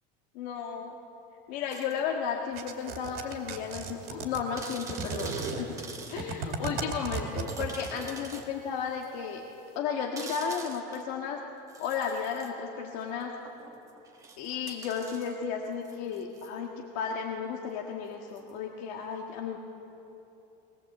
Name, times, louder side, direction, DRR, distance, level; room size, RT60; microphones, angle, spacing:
voice 1, 0.4-0.9 1.5-9.4 9.8-11.4 11.8-13.3 14.4-19.6, left 6 dB, 75° left, 0 dB, 1.7 m, -34 dB
sound 1, 1.7-2.0 3.0-3.1 3.5-3.6 3.8-3.9 4.6-6.2 6.7-6.8 7.5-8.5 9.0-9.1 10.2-11.1 11.7-12.5 13.5-16.5 18.4-18.5, right 4 dB, 15° right, 1.5 m, -45 dB
sound 2, 2.6-8.0, right 5 dB, 45° right, 2.4 m, -35 dB
21.0 x 20.5 x 8.0 m, 3.0 s
cardioid pair, 170°, 21 cm